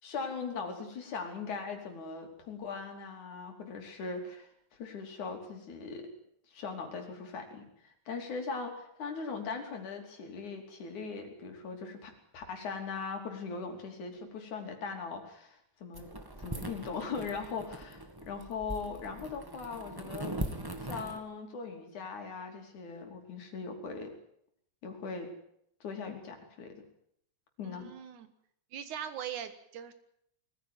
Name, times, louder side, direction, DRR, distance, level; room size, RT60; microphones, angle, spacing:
voice 1, 0.0-6.1 6.5-16.1 16.4-20.4 20.8-24.1 24.8-25.3 25.8-26.8 27.6-27.9, left 5 dB, 75° left, 4 dB, 4.6 m, -40 dB
sound 1, 15.9-21.2, right 1 dB, 10° right, 1.4 m, -41 dB
voice 2, 27.6-28.3 28.7-29.9, right 9 dB, 80° right, 10 dB, 3.0 m, -41 dB
21.0 x 15.0 x 9.5 m, 0.73 s
omnidirectional pair, 3.4 m